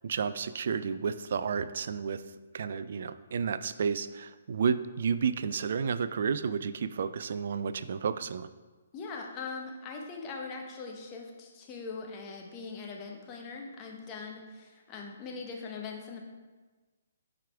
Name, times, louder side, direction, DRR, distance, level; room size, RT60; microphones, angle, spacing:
voice 1, 0.0-2.2 2.5-8.5, right 6 dB, 55° right, 13 dB, 0.3 m, -31 dB
voice 2, 8.9-16.2, left 4 dB, 25° left, 1 dB, 1.1 m, -41 dB
8.8 x 5.0 x 3.5 m, 1.3 s
figure-of-eight pair, 130°, 0 cm